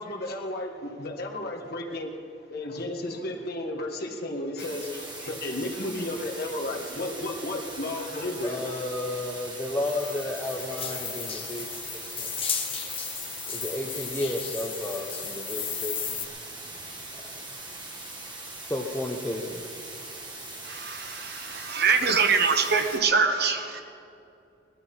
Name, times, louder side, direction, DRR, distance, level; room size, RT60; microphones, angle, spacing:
voice 1, 0.0-2.2 2.5-8.7, left 1 dB, 55° left, 0 dB, 1.8 m, -33 dB
sound 1, 4.6-23.0, right 2 dB, 25° right, 2.0 m, -41 dB
voice 2, 8.4-12.4 13.5-16.2 17.1-17.4 18.6-19.6 21.3-21.5, left 1 dB, 10° left, -1 dB, 0.8 m, -33 dB
sound 2, 9.8-16.2, left 7 dB, 30° left, 1.7 m, -35 dB
voice 3, 20.6-23.8, right 5 dB, 55° right, 6 dB, 1.1 m, -24 dB
19.0 x 12.0 x 5.6 m, 2.7 s
head